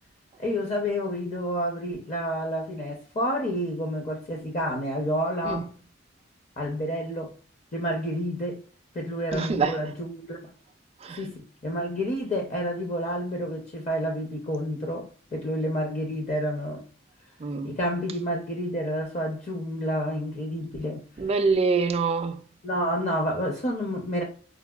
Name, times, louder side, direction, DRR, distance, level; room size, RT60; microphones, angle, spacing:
voice 1, 0.4-5.7 6.6-7.3 7.7-8.6 8.9-10.4 11.2-11.3 11.6-16.8 17.6-21.0 22.6-24.2, equal, 35° left, 0.6 m, -29 dB
voice 2, 9.3-9.8 11.0-11.2 17.4-17.7 21.2-22.4, right 4 dB, 30° right, 0.3 m, -25 dB
4.5 x 2.2 x 2.3 m
head